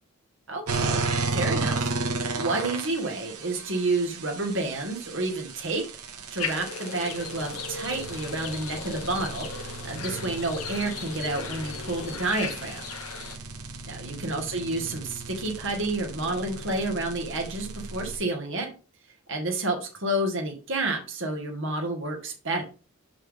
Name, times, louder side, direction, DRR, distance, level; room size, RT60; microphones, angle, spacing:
voice 1, 0.5-1.0 1.3-2.1 2.4-5.8 6.3-12.8 13.8-18.7 19.3-22.6, right 2 dB, 55° right, 2 dB, 1.7 m, -30 dB
sound 1, 0.7-18.2, right 3 dB, 85° right, 1.2 m, -34 dB
sound 2, 6.4-13.4, left 5 dB, 75° left, 0.9 m, -37 dB
6.0 x 5.6 x 3.5 m, 0.35 s
head